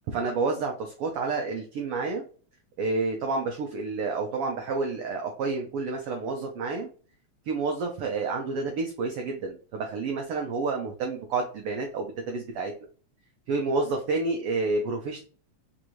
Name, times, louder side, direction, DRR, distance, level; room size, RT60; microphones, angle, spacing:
voice 1, 0.1-2.2 2.8-6.9 7.5-12.7 13.5-15.2, right 3 dB, 80° right, 2 dB, 1.3 m, -29 dB
4.6 x 2.6 x 3.0 m, 0.39 s
omnidirectional pair, 3.3 m